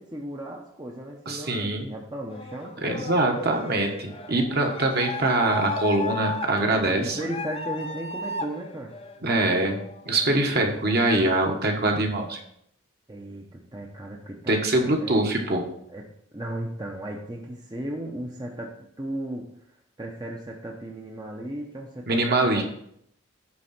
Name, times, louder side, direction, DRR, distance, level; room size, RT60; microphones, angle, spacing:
voice 1, 0.0-3.2 6.9-9.0 13.1-15.3 15.9-19.6 20.0-22.6, right 1 dB, 20° right, 0 dB, 0.7 m, -36 dB
voice 2, 1.3-1.9 2.8-7.2 9.2-9.8 10.0-12.4 14.5-15.6 22.1-22.6, right 2 dB, 45° right, 2 dB, 1.3 m, -23 dB
sound 1, 2.3-11.5, left 3 dB, 25° left, 0.6 m, -36 dB
9.5 x 3.8 x 5.8 m, 0.71 s
head